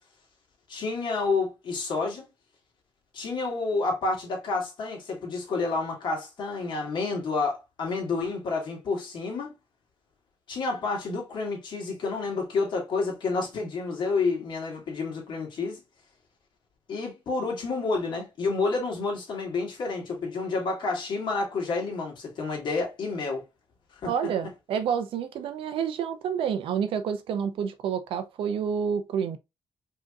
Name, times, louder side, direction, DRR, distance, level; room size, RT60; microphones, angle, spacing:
voice 1, 0.7-2.2 3.1-9.5 10.5-15.8 16.9-23.4 24.0-24.1, left 3 dB, 60° left, 1.8 m, -29 dB
voice 2, 24.1-29.4, right 7 dB, 90° right, 0.6 m, -29 dB
4.9 x 2.9 x 2.4 m
cardioid pair, 145°, 9 cm